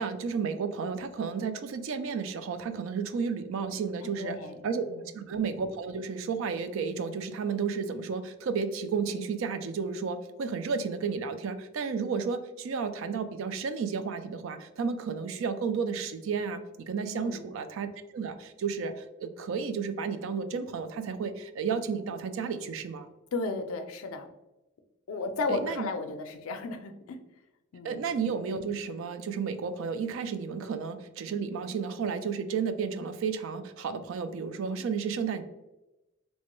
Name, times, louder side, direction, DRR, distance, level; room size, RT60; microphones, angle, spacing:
voice 1, 0.0-4.4 4.6-4.8 5.1-17.9 18.1-23.1 25.5-25.9 27.8-35.4, right 5 dB, 65° right, 10 dB, 0.3 m, -32 dB
voice 2, 4.0-4.6 4.9-5.2 17.1-17.4 23.3-24.3 25.1-27.2 27.7-28.0, left 3 dB, 80° left, 7 dB, 0.4 m, -34 dB
3.1 x 2.2 x 3.0 m, 0.97 s
head